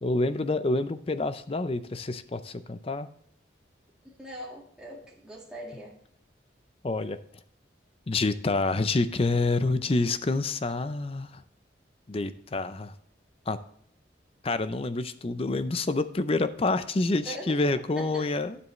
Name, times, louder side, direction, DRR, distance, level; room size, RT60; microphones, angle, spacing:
voice 1, 0.0-3.1 6.8-7.2 8.1-11.4 12.1-12.9 13.5-13.6 14.4-18.6, left 2 dB, 30° left, 12 dB, 0.5 m, -27 dB
voice 2, 4.2-6.0 17.2-18.2, right 1 dB, 5° right, -4 dB, 2.0 m, -41 dB
9.6 x 7.8 x 3.1 m, 0.65 s
head